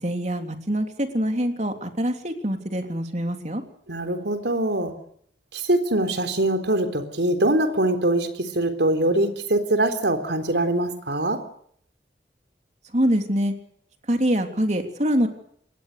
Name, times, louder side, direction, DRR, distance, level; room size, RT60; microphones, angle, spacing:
voice 1, 0.0-3.6 12.9-13.5 14.1-15.3, equal, 40° right, 5 dB, 3.3 m, -24 dB
voice 2, 3.9-4.9 5.5-11.4, right 1 dB, 75° right, 8 dB, 3.8 m, -23 dB
27.5 x 21.5 x 6.8 m, 0.65 s
head